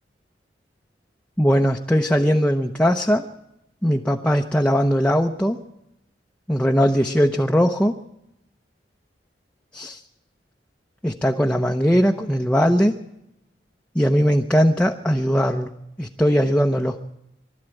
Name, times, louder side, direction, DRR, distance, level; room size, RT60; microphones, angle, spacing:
voice 1, 1.4-3.2 3.8-5.6 6.5-7.9 9.7-10.0 11.0-13.0 13.9-15.7 16.0-17.0, equal, 5° left, 2 dB, 0.8 m, -19 dB
23.5 x 13.0 x 9.0 m, 0.87 s
head